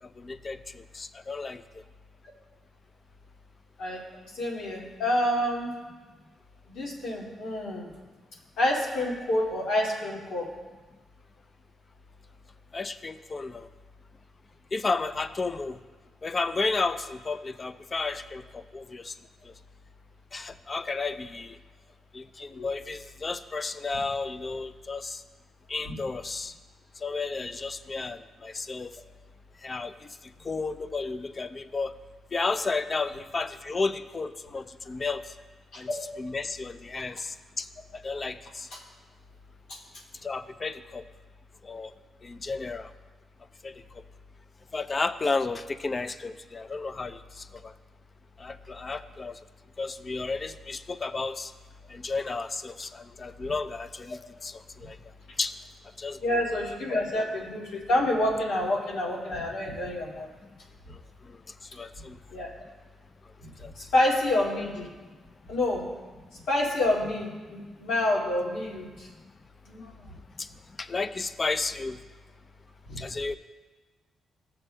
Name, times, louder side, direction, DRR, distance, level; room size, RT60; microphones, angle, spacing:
voice 1, 0.0-1.8 12.7-13.7 14.7-15.8 16.2-19.2 19.4-19.5 20.3-21.6 22.1-25.2 25.7-26.6 27.0-29.0 29.6-32.0 32.3-35.3 35.8-35.9 36.2-37.7 38.0-38.7 40.2-41.0 41.6-41.9 42.2-42.9 43.6-44.0 44.7-47.7 48.4-49.4 49.8-51.5 51.9-55.0 55.4-55.6 56.0-56.5 60.9-62.2 63.6-63.9 65.1-65.2 67.6-67.8 70.3-72.0 73.0-73.4, left 3 dB, 30° left, 12 dB, 0.4 m, -33 dB
voice 2, 4.3-5.8 6.7-7.9 8.6-10.5 22.5-22.7 35.7-35.8 38.7-38.8 39.7-39.8 56.2-60.3 62.3-62.5 63.4-63.5 63.8-64.9 65.5-65.8 66.5-69.1 69.7-70.1 72.9-73.0, left 1 dB, 85° left, -5 dB, 2.1 m, -28 dB
15.0 x 7.1 x 2.2 m, 1.4 s
cardioid pair, 115°, 0 cm